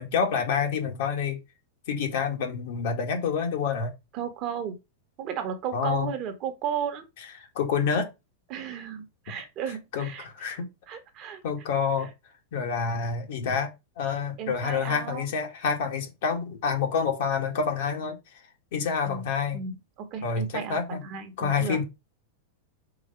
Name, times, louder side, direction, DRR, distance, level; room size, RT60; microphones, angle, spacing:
voice 1, 0.0-1.4 1.9-3.9 5.7-6.1 7.6-8.1 9.9-10.7 11.4-12.1 12.5-18.2 18.7-19.6 20.2-21.0 21.4-21.8, left 6 dB, 55° left, 1.9 m, -28 dB
voice 2, 4.1-4.8 5.2-7.1 8.5-10.6 10.9-11.4 14.4-15.3 19.0-19.2 19.5-21.8, right 8 dB, 30° right, 1.2 m, -34 dB
5.0 x 4.3 x 5.6 m
supercardioid pair, 170°, 0 cm